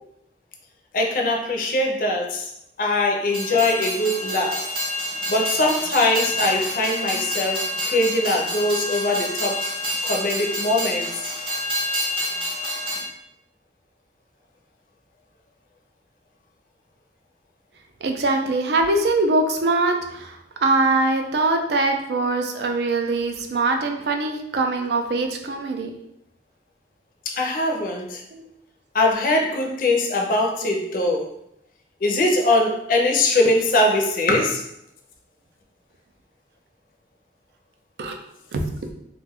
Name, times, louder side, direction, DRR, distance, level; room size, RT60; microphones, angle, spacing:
voice 1, 0.9-2.4 2.8-4.6 5.3-9.6 10.0-11.1 27.3-28.2 28.9-31.3 32.0-34.6, left 2 dB, 50° left, 1 dB, 0.4 m, -21 dB
Train, 3.3-13.0, left 1 dB, 30° right, 0.7 m, -28 dB
voice 2, 18.0-20.3 20.6-25.9 28.3-28.4 38.0-38.2 38.5-38.6, right 2 dB, 70° right, 4 dB, 0.4 m, -22 dB
2.5 x 2.2 x 3.4 m, 0.79 s
head